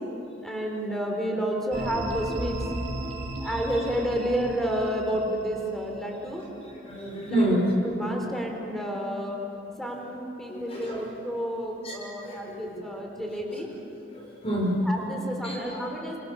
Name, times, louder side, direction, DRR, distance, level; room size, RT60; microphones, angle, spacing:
voice 1, 0.4-2.6 3.4-6.4 7.3-9.4 9.8-13.7 14.8-16.2, equal, ahead, 1 dB, 4.0 m, -30 dB
sound 1, 1.7-6.5, right 1 dB, 40° right, 3.6 m, -36 dB
voice 2, 6.9-7.7 10.5-11.0 11.8-11.9 12.2-12.8 14.2-14.9 15.4-15.8, right 1 dB, 30° left, -2 dB, 6.3 m, -28 dB
28.0 x 26.0 x 7.1 m, 2.9 s
head